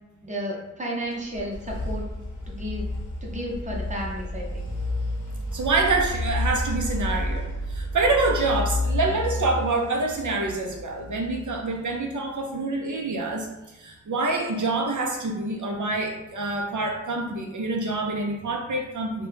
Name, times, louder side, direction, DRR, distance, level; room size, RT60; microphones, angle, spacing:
voice 1, 0.2-2.0 2.5-2.9 3.2-4.7, equal, 25° right, -2 dB, 0.7 m, -32 dB
sound 1, 1.1-11.9, left 1 dB, 85° left, 0.7 m, -31 dB
voice 2, 5.5-13.5 13.7-19.3, right 3 dB, 75° right, 1 dB, 0.5 m, -26 dB
2.7 x 2.2 x 3.3 m, 1.0 s
wide cardioid pair, 55°, 31 cm